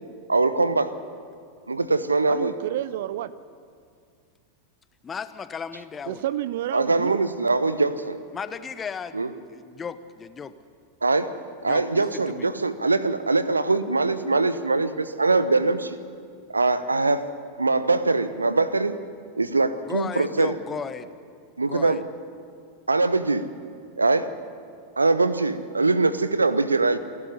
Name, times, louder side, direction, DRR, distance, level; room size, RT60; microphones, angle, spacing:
voice 1, 0.3-0.9 1.7-2.5 6.7-8.2 9.1-9.3 11.0-11.3 11.6-16.0 16.5-17.2 17.6-19.0 19.4-20.5 21.6-22.0 22.9-23.4 24.0-24.3 25.0-27.0, right 3 dB, 80° right, 14 dB, 0.9 m, -22 dB
voice 2, 2.3-3.3 6.1-7.2, right 13 dB, 55° right, 18 dB, 0.5 m, -29 dB
voice 3, 5.0-6.2 8.3-9.2 9.5-10.5 11.6-12.5 19.8-21.1 21.6-22.0, left 6 dB, 20° left, 12 dB, 1.0 m, -35 dB
28.5 x 12.0 x 9.6 m, 2.3 s
figure-of-eight pair, 90°, 0 cm